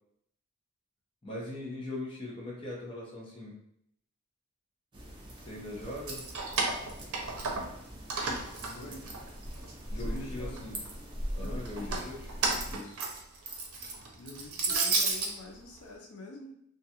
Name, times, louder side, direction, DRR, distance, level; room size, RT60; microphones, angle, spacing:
voice 1, 1.2-3.6 5.4-6.2 8.6-9.0 9.9-10.8 11.3-12.2 12.7-13.1, left 1 dB, 25° left, -5 dB, 0.7 m, -41 dB
sound 1, 4.9-12.8, equal, 20° right, 0.5 m, -41 dB
Keys jangling, 5.9-7.8 8.1-9.7 10.1-10.9 11.6-15.3, right 3 dB, 90° right, 0.6 m, -32 dB
voice 2, 8.7-9.1 9.9-10.7 11.4-12.1 14.1-16.5, left 2 dB, 80° left, 2 dB, 0.5 m, -46 dB
2.4 x 2.2 x 2.8 m, 0.72 s
head